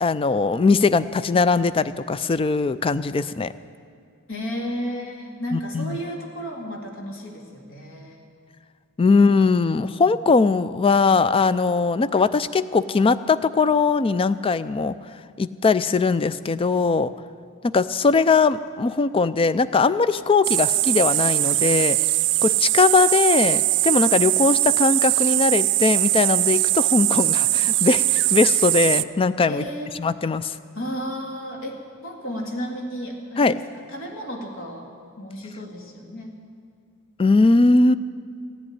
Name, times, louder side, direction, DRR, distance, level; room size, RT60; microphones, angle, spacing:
voice 1, 0.0-3.5 5.5-6.0 9.0-15.0 15.4-17.1 17.6-22.0 22.4-29.6 30.0-30.5 33.4-33.6 37.2-37.9, left 4 dB, 25° left, 15 dB, 0.3 m, -20 dB
voice 2, 4.3-8.2 29.5-30.0 30.7-36.4, equal, 60° left, 1 dB, 2.1 m, -33 dB
sound 1, 20.4-29.0, right 18 dB, 55° right, 0.3 m, -21 dB
15.0 x 7.9 x 10.0 m, 2.2 s
head